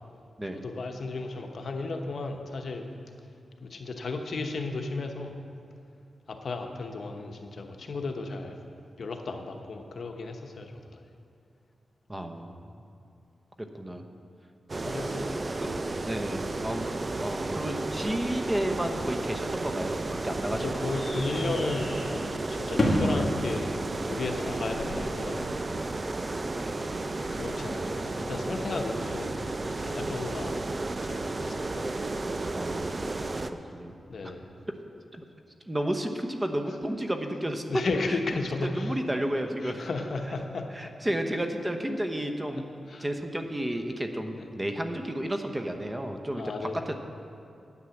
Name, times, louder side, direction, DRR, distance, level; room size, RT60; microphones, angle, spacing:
voice 1, 0.6-2.9 3.6-5.3 6.3-8.6 9.0-11.0 14.8-15.3 20.6-23.7 24.1-25.8 27.2-29.4 29.8-30.6 31.0-31.9 34.1-34.5 37.7-38.9 39.6-40.6 42.9-43.0 44.4-44.5 46.3-46.8, left 3 dB, 65° left, 4 dB, 1.0 m, -34 dB
voice 2, 12.1-12.6 13.6-14.0 14.7-15.0 15.6-15.7 16.0-16.9 17.2-20.8 32.5-33.0 33.7-33.9 34.2-34.3 35.1-35.2 35.7-39.8 40.7-42.6 43.0-46.9, right 1 dB, 20° right, 5 dB, 0.9 m, -32 dB
sound 1, 14.7-33.5, right 2 dB, 35° right, 0.6 m, -33 dB
sound 2, 20.4-25.5, left 1 dB, 45° left, 2.3 m, -33 dB
9.7 x 9.0 x 7.2 m, 2.5 s
cardioid pair, 85°, 0 cm